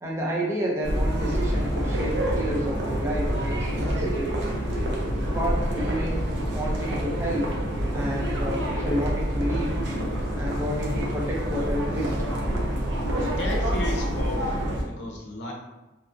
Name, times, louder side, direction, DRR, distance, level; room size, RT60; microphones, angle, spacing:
voice 1, 0.0-4.4 5.3-6.2 6.5-7.5 7.9-9.8 10.3-12.1, equal, 15° right, -4 dB, 0.5 m, -30 dB
sound 1, 0.8-14.8, equal, 75° right, 0.6 m, -27 dB
voice 2, 13.2-15.5, left 1 dB, 70° left, -1 dB, 0.6 m, -34 dB
2.7 x 2.3 x 2.6 m, 1.0 s
head